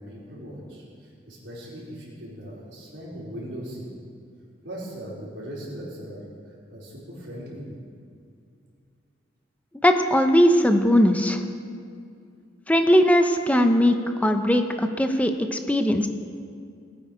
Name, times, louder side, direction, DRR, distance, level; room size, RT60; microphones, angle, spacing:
voice 1, 0.0-3.9 4.6-6.3 6.7-7.6, equal, 90° right, -5 dB, 4.3 m, -39 dB
voice 2, 9.8-11.4 12.7-14.0 14.2-16.1, equal, 10° left, 6 dB, 0.6 m, -19 dB
19.0 x 9.1 x 5.1 m, 2.3 s
head